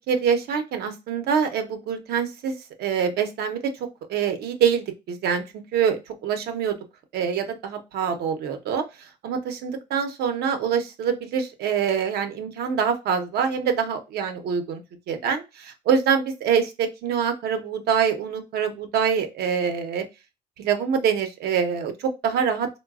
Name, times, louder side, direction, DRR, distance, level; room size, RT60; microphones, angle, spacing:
voice 1, 0.1-3.6 4.1-5.4 5.7-6.8 7.1-8.8 9.2-14.8 15.1-20.0 20.6-22.7, right 7 dB, 70° right, 6 dB, 0.7 m, -25 dB
3.9 x 2.2 x 2.3 m, 0.25 s
cardioid pair, 110°, 17 cm